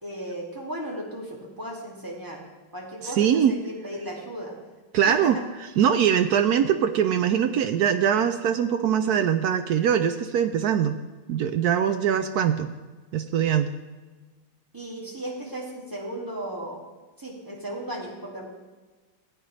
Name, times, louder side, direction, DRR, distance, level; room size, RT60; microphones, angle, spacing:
voice 1, 0.0-2.4 2.7-4.6 5.1-5.4 14.7-16.8 17.2-18.5, right 1 dB, 10° right, -3 dB, 2.1 m, -35 dB
voice 2, 3.2-3.5 4.9-5.4 5.8-11.0 11.3-12.7 13.1-13.7, right 9 dB, 80° right, 8 dB, 0.8 m, -22 dB
15.5 x 9.2 x 3.2 m, 1.3 s
omnidirectional pair, 2.2 m